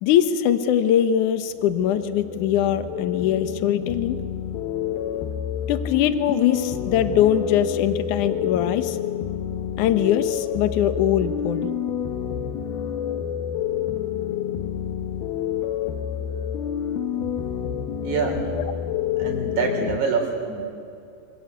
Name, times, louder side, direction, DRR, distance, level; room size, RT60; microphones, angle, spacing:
voice 1, 0.0-4.2 5.7-9.0 9.8-11.7, left 10 dB, 65° left, 11 dB, 2.3 m, -22 dB
sound 1, 1.6-20.0, left 9 dB, 80° left, 3.1 m, -28 dB
voice 2, 18.0-18.4 19.2-20.6, right 4 dB, 55° right, 3 dB, 5.1 m, -25 dB
26.0 x 25.5 x 8.2 m, 2.5 s
omnidirectional pair, 4.3 m